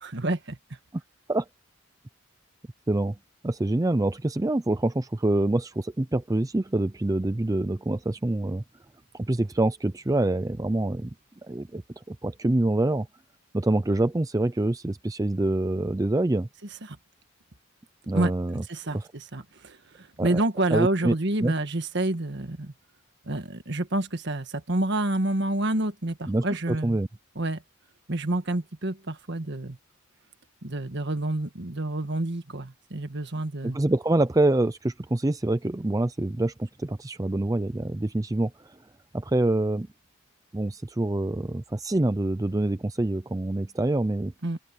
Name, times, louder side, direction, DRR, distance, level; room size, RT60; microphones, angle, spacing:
voice 1, 0.0-0.6 16.8-17.0 18.1-22.7 23.2-27.0 27.3-27.6 28.1-29.8 30.6-33.8 44.4-44.6, right 2 dB, 55° right, 1.6 m, -28 dB
voice 2, 3.4-8.6 9.1-11.1 11.4-13.1 13.5-16.5 18.1-18.6 18.9-19.0 20.2-20.4 20.7-21.2 21.4-21.5 26.3-27.1 33.6-38.8 39.1-39.9 40.5-44.3, right 2 dB, 15° right, 0.4 m, -26 dB
open air
head